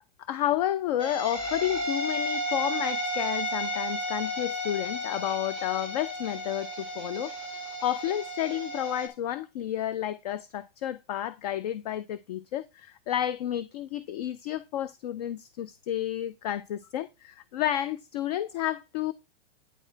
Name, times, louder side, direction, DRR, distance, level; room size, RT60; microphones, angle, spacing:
voice 1, 0.3-7.3 7.6-19.1, left 12 dB, 40° left, 0.4 m, -31 dB
sound 1, 1.0-9.1, equal, 15° left, 1.5 m, -33 dB
8.9 x 4.6 x 4.4 m
supercardioid pair, 175°, 30 cm